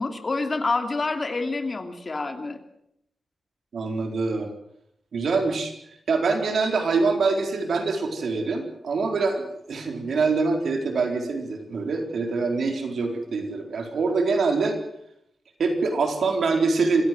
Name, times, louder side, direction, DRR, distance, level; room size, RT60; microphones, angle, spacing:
voice 1, 0.0-2.6, left 3 dB, 35° left, 6 dB, 2.8 m, -27 dB
voice 2, 3.7-4.5 5.1-5.7 6.1-14.8 15.6-17.1, right 4 dB, 75° right, 4 dB, 4.2 m, -24 dB
26.0 x 16.5 x 7.8 m, 0.75 s
wide cardioid pair, 155°, 0 cm